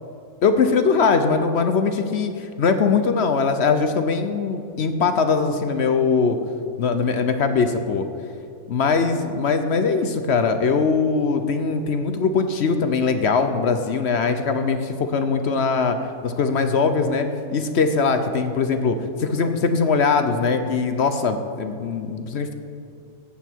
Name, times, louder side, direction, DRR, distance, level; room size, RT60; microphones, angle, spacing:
voice 1, 0.4-6.4 6.8-8.1 8.7-17.3 17.5-22.5, left 5 dB, 55° left, 8 dB, 0.8 m, -21 dB
14.0 x 8.8 x 4.5 m, 2.5 s
omnidirectional pair, 1.6 m